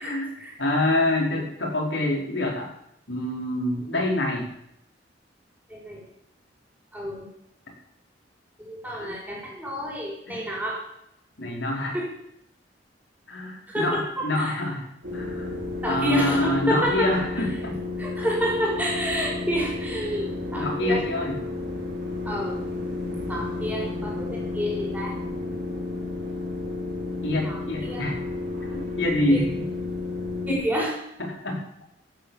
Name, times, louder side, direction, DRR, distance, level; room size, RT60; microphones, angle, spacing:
voice 1, 0.0-0.6 5.7-6.0 6.9-7.2 8.6-10.8 11.4-11.5 11.9-12.1 13.7-14.5 15.8-17.1 18.0-21.0 22.3-22.6 23.3-25.2 27.4-28.0 29.3-29.4 30.5-31.0, equal, 10° right, -2 dB, 5.3 m, -29 dB
voice 2, 0.6-2.7 3.1-4.5 9.0-9.1 10.3-10.5 11.4-11.9 13.3-14.8 15.1-17.8 20.5-21.4 27.2-28.2 28.7-29.6 30.5-30.6 31.2-31.6, left 1 dB, 90° left, -1 dB, 4.9 m, -26 dB
sound 1, 15.0-30.5, left 3 dB, 65° right, 5.4 m, -32 dB
14.0 x 9.0 x 7.4 m, 0.76 s
head